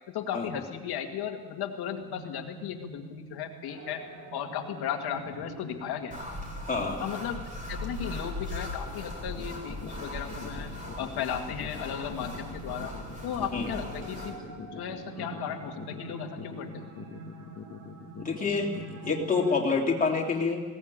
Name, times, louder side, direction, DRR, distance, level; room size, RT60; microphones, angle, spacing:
voice 1, 0.1-4.0 4.3-6.2 7.0-10.7 11.0-13.0 13.2-14.4 14.7-16.9, left 9 dB, 80° left, 3 dB, 2.1 m, -35 dB
sound 1, 1.9-19.6, right 3 dB, 50° right, 2.8 m, -46 dB
sound 2, 6.1-14.3, left 1 dB, 20° right, 4.2 m, -39 dB
voice 2, 6.7-7.0 13.5-13.7 18.2-20.6, left 4 dB, 20° left, -1 dB, 3.3 m, -27 dB
sound 3, 9.3-19.3, left 7 dB, 40° left, 1.6 m, -44 dB
20.5 x 18.0 x 8.8 m, 1.4 s
cardioid pair, 165°, 38 cm